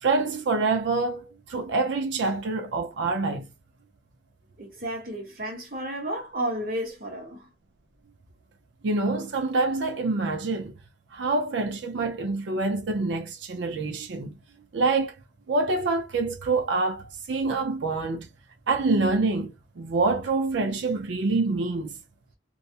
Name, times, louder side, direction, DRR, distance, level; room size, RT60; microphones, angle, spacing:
voice 1, 0.0-3.5 8.8-10.7 11.1-14.3 14.7-15.2 15.5-18.3 18.7-22.0, right 3 dB, 90° right, 0.5 m, -26 dB
voice 2, 4.6-7.5, right 1 dB, 50° right, 1.0 m, -32 dB
2.3 x 2.0 x 2.7 m
head